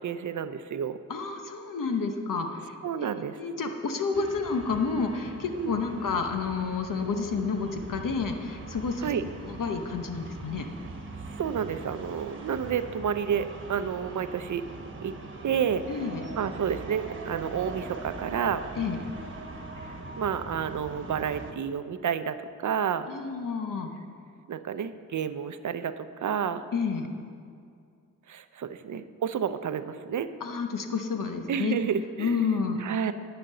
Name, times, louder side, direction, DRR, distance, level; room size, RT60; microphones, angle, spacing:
voice 1, 0.0-1.0 2.8-3.4 5.5-5.8 9.0-9.2 11.3-14.6 15.0-15.1 15.4-15.8 16.4-18.6 20.2-23.1 24.5-26.6 28.3-30.3 31.5-33.1, right 8 dB, 65° right, 11 dB, 0.5 m, -30 dB
voice 2, 1.1-2.6 3.0-3.1 3.4-9.1 9.5-10.6 15.9-16.3 18.8-19.0 23.1-23.9 26.7-27.1 30.4-31.8 32.2-32.8, left 5 dB, 80° left, 5 dB, 0.9 m, -30 dB
sound 1, 4.1-21.5, right 3 dB, 40° right, 1.2 m, -41 dB
10.0 x 5.2 x 7.7 m, 2.3 s
wide cardioid pair, 80°, 32 cm